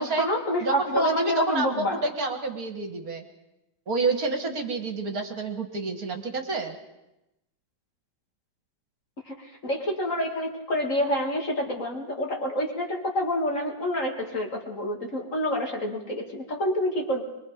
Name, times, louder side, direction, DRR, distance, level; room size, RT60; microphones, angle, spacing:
voice 1, 0.0-2.0 9.3-17.2, left 1 dB, 40° left, 1 dB, 2.6 m, -28 dB
voice 2, 0.6-3.3 3.9-6.8, right 3 dB, 50° right, 5 dB, 2.0 m, -28 dB
24.0 x 22.5 x 5.1 m, 0.92 s
omnidirectional pair, 2.1 m